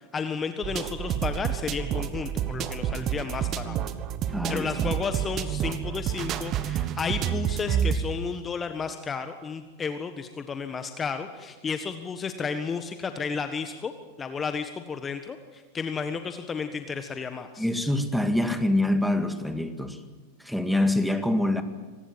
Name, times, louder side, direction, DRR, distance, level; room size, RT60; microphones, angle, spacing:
voice 1, 0.1-3.8 4.5-13.9 14.2-17.6, left 5 dB, 20° left, 8 dB, 1.4 m, -32 dB
sound 1, 0.6-8.0, right 10 dB, 35° right, 1.4 m, -29 dB
voice 2, 4.3-4.9 17.6-20.0 20.4-21.6, left 1 dB, ahead, 7 dB, 2.0 m, -25 dB
25.5 x 19.0 x 7.5 m, 1.4 s
figure-of-eight pair, 95°, 0 cm